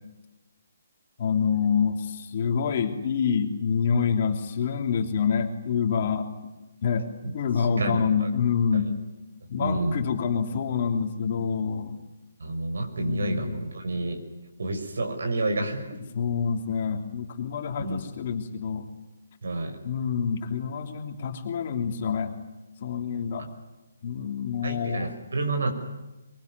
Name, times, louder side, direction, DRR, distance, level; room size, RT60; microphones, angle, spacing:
voice 1, 1.2-6.3 6.8-7.1 7.3-8.9 9.5-12.0 13.0-13.5 16.1-18.9 19.8-22.4 22.8-23.4 24.0-25.2, left 6 dB, 30° left, 5 dB, 3.1 m, -27 dB
voice 2, 7.8-8.3 8.7-8.8 9.6-10.0 12.4-14.2 14.6-15.9 17.8-18.0 19.4-19.8 24.6-25.7, right 2 dB, 70° right, 5 dB, 5.7 m, -29 dB
23.5 x 23.5 x 9.7 m, 1.1 s
hypercardioid pair, 175°, 0 cm